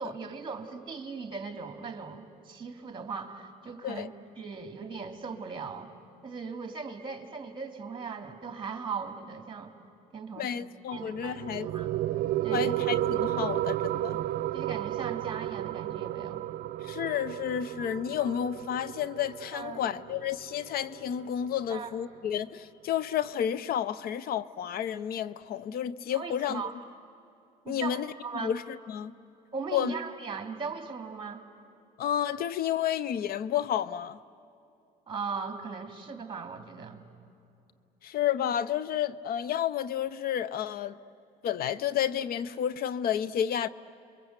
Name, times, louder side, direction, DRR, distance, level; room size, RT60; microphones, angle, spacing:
voice 1, 0.0-4.1 4.4-5.9 6.2-9.8 10.1-10.6 10.9-11.9 12.4-12.7 14.5-16.4 19.5-19.8 21.7-21.9 26.1-26.7 27.6-28.6 29.5-31.4 35.1-37.0, right 5 dB, 30° right, 2.8 m, -38 dB
voice 2, 10.4-11.7 12.5-14.2 16.8-26.6 27.7-28.1 28.4-29.1 29.7-29.9 32.0-34.2 38.0-41.0 41.4-43.7, left 9 dB, 60° left, 0.7 m, -31 dB
sound 1, 10.9-21.9, right 14 dB, 70° right, 0.7 m, -33 dB
30.0 x 22.5 x 8.1 m
cardioid pair, 110°, 17 cm